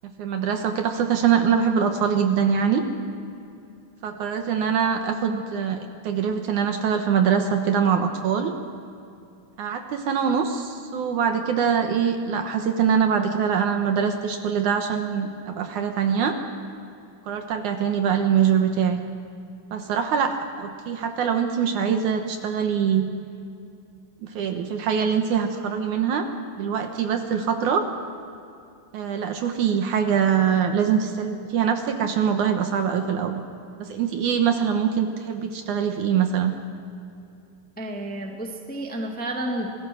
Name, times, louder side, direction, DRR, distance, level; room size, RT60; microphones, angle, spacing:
voice 1, 0.2-2.8 4.0-8.5 9.6-16.4 17.3-19.0 19.7-23.1 24.2-26.3 26.6-27.9 28.9-33.4 33.8-36.5, right 7 dB, 65° right, 5 dB, 2.4 m, -23 dB
voice 2, 37.8-39.7, right 1 dB, 5° left, 1 dB, 1.5 m, -31 dB
26.5 x 19.0 x 6.3 m, 2.6 s
omnidirectional pair, 4.1 m